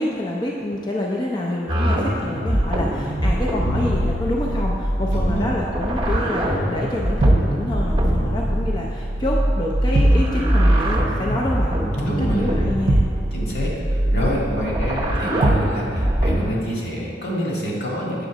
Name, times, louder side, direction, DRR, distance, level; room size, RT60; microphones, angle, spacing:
voice 1, 0.0-13.0, left 1 dB, 25° left, -2 dB, 0.5 m, -27 dB
sound 1, 1.7-16.5, right 1 dB, 25° right, 0.8 m, -22 dB
Bowed string instrument, 3.6-9.8, left 3 dB, 85° left, 0.7 m, -35 dB
voice 2, 5.1-5.5 12.0-12.6 13.3-18.2, equal, 70° left, -5 dB, 2.0 m, -27 dB
sound 2, 7.2-7.6 9.9-10.3 12.9-13.2 15.4-15.8, right 2 dB, 75° right, 0.6 m, -19 dB
7.9 x 3.8 x 6.2 m, 2.3 s
head